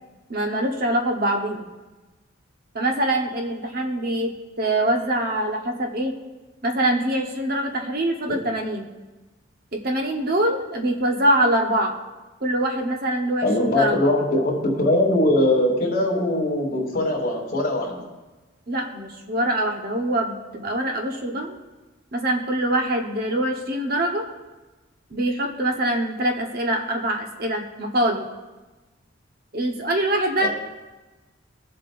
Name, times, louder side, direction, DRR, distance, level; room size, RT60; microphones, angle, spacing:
voice 1, 0.3-1.7 2.7-6.2 6.6-8.9 9.7-11.9 12.4-14.1 18.7-21.5 22.1-24.2 25.1-28.3 29.5-30.5, right 1 dB, 50° right, 2 dB, 1.1 m, -24 dB
voice 2, 13.4-18.0 30.4-30.5, left 1 dB, 45° left, -1 dB, 2.9 m, -21 dB
21.5 x 7.6 x 2.6 m, 1.2 s
head